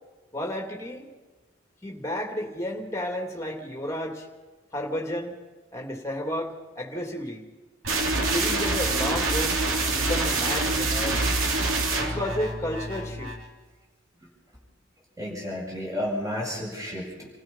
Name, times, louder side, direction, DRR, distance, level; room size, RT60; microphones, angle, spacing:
voice 1, 0.3-1.1 1.8-4.3 4.7-5.3 5.7-7.5 8.2-9.6 9.9-11.2 12.0-13.3, equal, 15° left, 1 dB, 2.9 m, -32 dB
sound 1, 7.8-13.5, right 2 dB, 90° right, 3.4 m, -26 dB
voice 2, 15.2-17.3, left 1 dB, 15° right, -3 dB, 7.6 m, -32 dB
29.0 x 16.0 x 5.7 m, 1.3 s
head